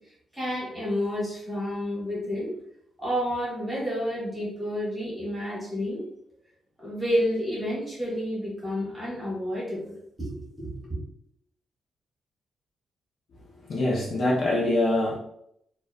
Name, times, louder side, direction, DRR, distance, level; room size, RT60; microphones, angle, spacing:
voice 1, 0.3-2.5 3.0-6.0 6.8-9.9 10.2-11.0, equal, 10° right, -7 dB, 1.0 m, -30 dB
voice 2, 13.6-15.2, left 1 dB, 40° left, -4 dB, 0.4 m, -24 dB
2.3 x 2.1 x 2.5 m, 0.73 s
wide cardioid pair, 180°, 0 cm